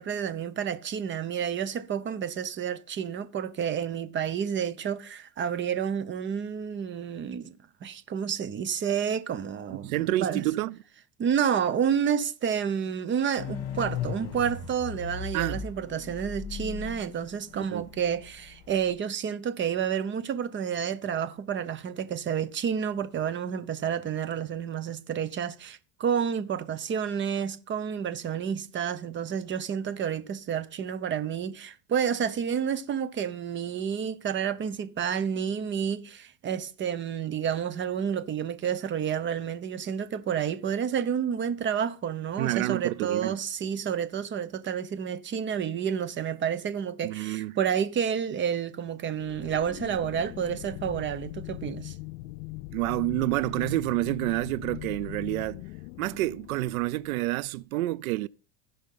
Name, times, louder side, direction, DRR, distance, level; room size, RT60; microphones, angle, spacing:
voice 1, 0.0-7.6 7.8-10.4 11.2-51.9, right 8 dB, 25° right, 0.9 m, -30 dB
voice 2, 9.7-10.7 15.3-15.6 17.5-17.9 42.4-43.4 47.0-47.5 52.7-55.6 56.0-58.3, right 18 dB, 85° right, 0.5 m, -28 dB
sound 1, 13.4-18.9, left 7 dB, 40° left, 2.7 m, -37 dB
sound 2, 49.2-57.5, left 19 dB, 75° left, 0.7 m, -41 dB
16.0 x 5.4 x 3.8 m
supercardioid pair, 115°, 41 cm